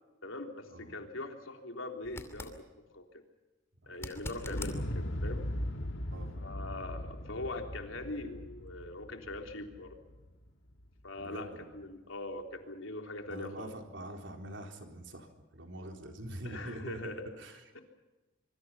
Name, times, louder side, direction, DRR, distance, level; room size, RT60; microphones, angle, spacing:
voice 1, 0.2-2.6 2.9-3.2 3.9-5.4 6.4-10.0 11.0-13.7 16.4-17.3 17.8-17.9, left 2 dB, 90° left, 4 dB, 3.6 m, -42 dB
sound 1, 2.0-2.6 3.9-4.8 7.8-7.9, left 1 dB, 15° left, 2.6 m, -42 dB
voice 2, 3.8-4.4 6.1-6.4 11.2-11.7 13.2-17.8, right 1 dB, 65° right, 4 dB, 4.1 m, -45 dB
Explosion, 4.4-10.5 10.8-10.9, left 1 dB, 70° left, 1.8 m, -39 dB
26.0 x 24.5 x 5.7 m, 1.1 s
head